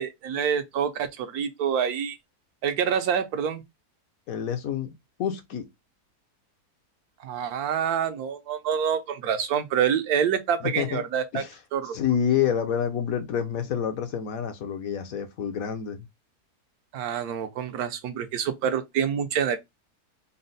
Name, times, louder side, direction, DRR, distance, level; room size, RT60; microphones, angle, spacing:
voice 1, 0.0-2.2 2.6-3.6 7.2-11.4 11.7-12.0 16.9-19.6, right 8 dB, 75° right, 1.2 m, -27 dB
voice 2, 4.3-5.7 10.6-11.0 11.3-11.5 11.9-16.0, left 8 dB, 65° left, 1.1 m, -28 dB
4.2 x 2.0 x 3.9 m
omnidirectional pair, 1.7 m